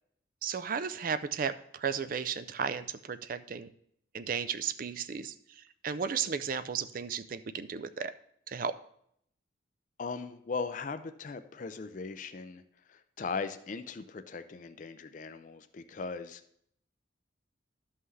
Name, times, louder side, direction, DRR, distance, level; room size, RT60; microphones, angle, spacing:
voice 1, 0.4-3.7 4.1-8.1 8.5-8.7, right 6 dB, 45° right, 13 dB, 0.4 m, -34 dB
voice 2, 10.0-12.6 12.9-16.4, left 4 dB, 40° left, 9 dB, 0.4 m, -38 dB
12.5 x 5.6 x 3.2 m, 0.69 s
head